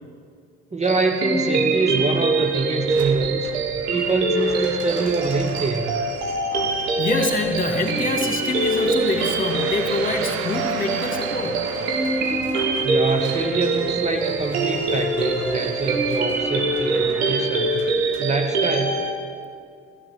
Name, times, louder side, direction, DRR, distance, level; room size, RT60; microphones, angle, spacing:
voice 1, 0.7-3.5 3.9-6.0 12.8-17.8 18.2-19.0, right 3 dB, 20° right, 4 dB, 1.0 m, -25 dB
sound 1, 0.8-19.1, right 3 dB, 70° right, 1.4 m, -24 dB
sound 2, 1.6-19.1, right 7 dB, 45° right, 0.9 m, -37 dB
voice 2, 6.7-11.7, left 3 dB, 25° left, 3 dB, 2.1 m, -26 dB
sound 3, 11.3-18.1, left 3 dB, 90° left, 0.9 m, -38 dB
15.0 x 8.1 x 7.6 m, 2.3 s
figure-of-eight pair, 45°, 32 cm